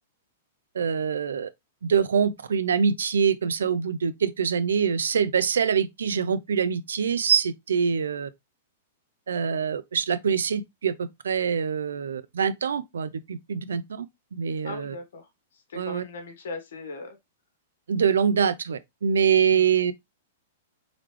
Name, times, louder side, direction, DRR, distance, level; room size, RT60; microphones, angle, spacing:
voice 1, 0.7-1.5 1.8-8.3 9.3-14.1 14.4-15.0 15.7-16.0 17.9-19.9, right 7 dB, 90° right, 0.4 m, -24 dB
voice 2, 14.6-15.3 15.7-17.2 19.5-19.6, left 3 dB, 80° left, 1.3 m, -38 dB
3.9 x 3.3 x 3.0 m
hypercardioid pair, 135°, 0 cm